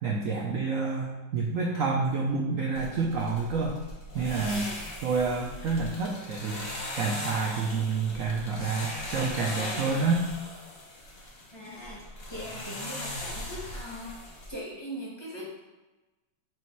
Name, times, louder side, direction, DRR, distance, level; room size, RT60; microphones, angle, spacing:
voice 1, 0.0-3.8 4.1-4.7 5.0-6.6 7.0-10.2, right 4 dB, 75° right, -1 dB, 0.7 m, -28 dB
sound 1, 2.8-14.5, left 1 dB, 40° left, 1.0 m, -39 dB
voice 2, 11.5-12.0 12.3-14.2 14.5-15.6, equal, 15° left, -6 dB, 1.3 m, -40 dB
7.0 x 3.1 x 4.5 m, 1.1 s
omnidirectional pair, 2.2 m